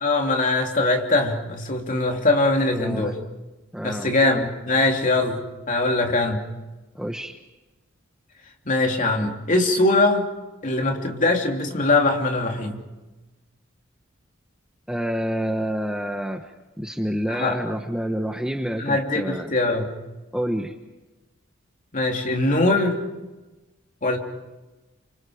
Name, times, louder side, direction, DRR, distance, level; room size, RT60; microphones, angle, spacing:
voice 1, 0.0-3.1 3.8-6.4 8.6-10.3 10.6-12.8 17.3-17.6 18.8-19.9 21.9-23.0 24.0-24.2, left 2 dB, 40° left, 2 dB, 3.2 m, -22 dB
voice 2, 2.7-3.1 3.7-4.1 6.9-7.4 14.9-16.4 16.8-19.5 20.3-20.7, equal, 5° right, 4 dB, 1.1 m, -28 dB
29.0 x 26.0 x 5.1 m, 1.1 s
head